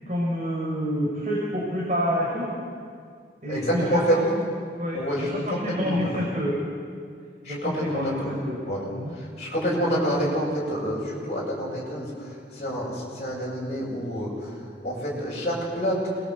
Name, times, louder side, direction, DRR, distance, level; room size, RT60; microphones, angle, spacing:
voice 1, 0.1-2.5 3.4-4.2 4.8-6.6 7.5-8.6 8.9-9.1, equal, 40° right, -4 dB, 4.9 m, -28 dB
voice 2, 3.5-4.2 4.9-6.2 7.4-8.3 8.7-8.9 9.1-14.6 14.8-16.0, equal, 40° left, -6 dB, 7.7 m, -28 dB
27.5 x 21.0 x 8.1 m, 2.2 s
head